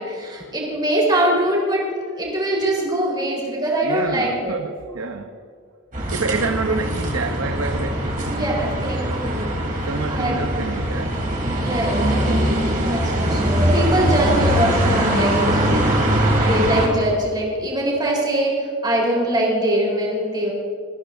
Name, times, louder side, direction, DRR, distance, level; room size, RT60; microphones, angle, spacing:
voice 1, 0.0-1.9 2.2-4.6 8.2-9.5 10.1-10.4 11.5-15.9 16.4-20.5, right 1 dB, 20° right, -3 dB, 3.9 m, -23 dB
voice 2, 3.8-5.3 6.1-9.2 9.8-11.1, right 3 dB, 85° right, 5 dB, 0.8 m, -28 dB
sound 1, 5.9-16.9, right 1 dB, 40° right, 3.2 m, -21 dB
21.5 x 15.0 x 2.6 m, 2.1 s
head